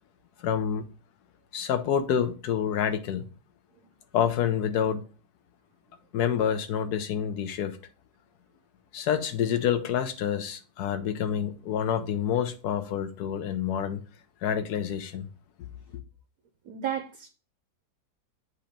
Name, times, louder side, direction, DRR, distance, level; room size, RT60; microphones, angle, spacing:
voice 1, 0.4-0.8 1.5-3.2 4.1-5.0 6.1-7.8 8.9-14.0 14.4-15.3, left 8 dB, 70° left, 1.3 m, -28 dB
voice 2, 16.7-17.3, right 9 dB, 65° right, 1.0 m, -32 dB
8.3 x 2.9 x 5.0 m
omnidirectional pair, 1.9 m